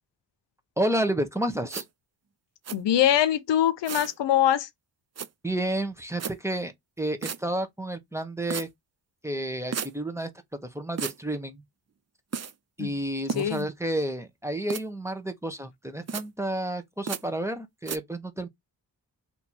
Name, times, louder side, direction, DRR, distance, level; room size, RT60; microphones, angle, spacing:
voice 1, 0.8-1.8 5.4-6.7 7.0-8.7 9.2-10.3 10.7-11.6 12.8-18.5, right 1 dB, 5° right, 1.2 m, -30 dB
sound 1, 1.7-1.8 2.6-2.8 3.8-4.1 5.2-5.3 6.2-6.3 7.2-7.4 8.5-8.7 9.7-9.9 11.0-11.2 12.3-12.5 13.3-13.6 14.7-14.8 16.1-16.2 17.1-17.2 17.9-18.0, right 7 dB, 40° right, 0.6 m, -33 dB
voice 2, 2.7-4.7 12.8-12.9 13.4-13.7, left 11 dB, 90° left, 0.7 m, -23 dB
3.4 x 3.0 x 4.3 m
cardioid pair, 50°, 41 cm